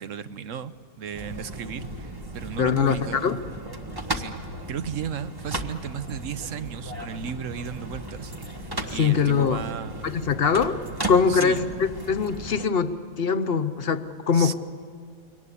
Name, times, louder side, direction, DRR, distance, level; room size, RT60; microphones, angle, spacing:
voice 1, 0.0-3.3 4.1-4.4 4.7-8.3 8.6-10.2 11.3-11.6 14.3-14.5, right 8 dB, 65° right, 13 dB, 1.1 m, -35 dB
sound 1, 1.1-12.6, right 1 dB, 15° right, 1.2 m, -36 dB
voice 2, 2.6-3.4 8.9-9.6 10.0-10.8 11.1-14.5, left 6 dB, 45° left, 10 dB, 1.0 m, -23 dB
24.0 x 18.5 x 10.0 m, 2.1 s
omnidirectional pair, 1.5 m